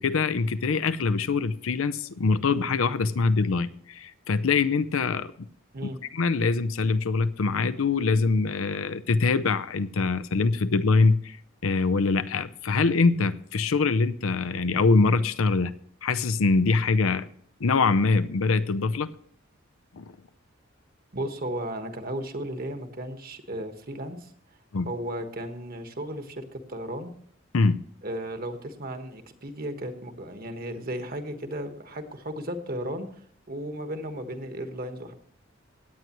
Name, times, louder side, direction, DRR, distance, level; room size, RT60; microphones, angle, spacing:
voice 1, 0.0-5.5 5.8-11.4 11.6-15.7 16.0-17.3 17.6-19.1 19.9-20.1 24.7-24.9 27.5-27.8, left 4 dB, 80° left, 0.6 m, -24 dB
voice 2, 21.1-24.3 24.8-27.1 28.0-33.1 33.5-35.1, right 1 dB, 45° right, 1.3 m, -35 dB
17.0 x 9.5 x 3.0 m
head